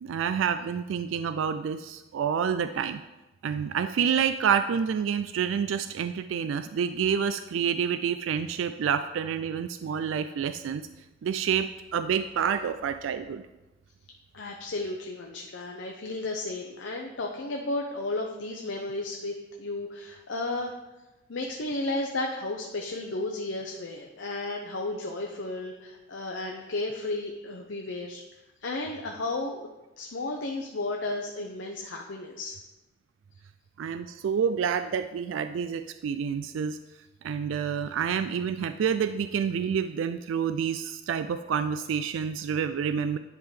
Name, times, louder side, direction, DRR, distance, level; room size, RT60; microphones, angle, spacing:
voice 1, 0.0-3.0 3.4-10.8 11.2-13.4 33.8-36.8 37.2-43.2, right 7 dB, 85° right, 10 dB, 0.3 m, -28 dB
voice 2, 14.3-20.7 21.3-28.2 28.6-29.7 30.0-32.6, left 2 dB, 75° left, 1 dB, 0.7 m, -33 dB
10.5 x 3.7 x 5.0 m, 1.0 s
head